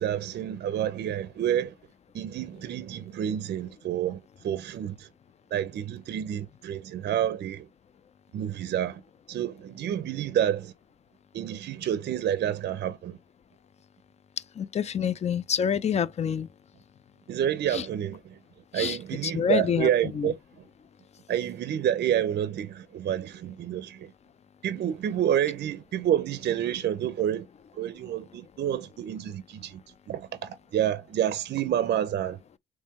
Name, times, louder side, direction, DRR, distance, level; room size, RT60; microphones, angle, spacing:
voice 1, 0.0-1.7 2.1-5.1 5.5-7.7 8.3-9.0 9.3-10.7 11.3-13.2 17.3-18.4 18.7-20.4 21.3-24.1 24.6-27.5 27.7-29.8 30.1-32.4, right 10 dB, 55° right, 0.5 m, -29 dB
voice 2, 14.6-16.5 17.7-17.9 18.7-20.3, left 8 dB, 35° left, 0.4 m, -27 dB
3.5 x 3.1 x 2.9 m
cardioid pair, 90°, 20 cm